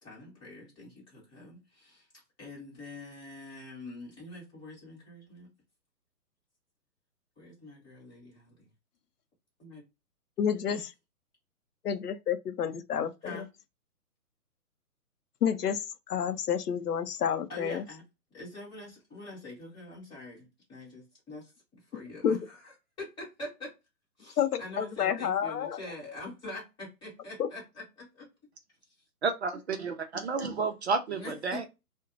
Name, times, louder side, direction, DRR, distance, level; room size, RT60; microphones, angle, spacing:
voice 1, 0.0-5.5 7.4-8.7 9.6-9.8 10.7-10.8 13.2-13.5 17.5-18.0 18.3-23.7 24.2-28.3 31.1-31.7, left 2 dB, 10° left, 1.1 m, -45 dB
voice 2, 10.4-10.8 11.8-13.4 15.4-17.8 22.2-22.4 24.4-25.7 27.4-27.5, left 8 dB, 80° left, 0.6 m, -29 dB
voice 3, 29.2-31.6, right 4 dB, 45° right, 0.5 m, -31 dB
2.6 x 2.1 x 2.6 m
figure-of-eight pair, 135°, 46 cm